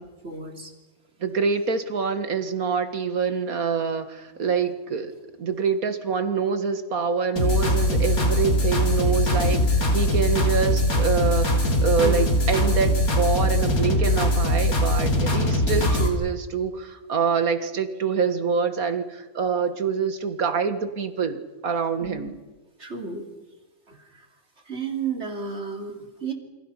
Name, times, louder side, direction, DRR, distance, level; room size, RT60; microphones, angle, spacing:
voice 1, 0.2-0.7 12.0-12.3 22.0-22.3 22.8-23.3 23.9-24.3 24.7-26.3, right 5 dB, 50° right, 3 dB, 3.4 m, -32 dB
voice 2, 1.2-22.3, right 5 dB, 80° right, 9 dB, 2.2 m, -26 dB
sound 1, 7.4-16.1, left 1 dB, 75° left, 3.6 m, -21 dB
28.5 x 25.5 x 5.8 m, 1.2 s
omnidirectional pair, 1.5 m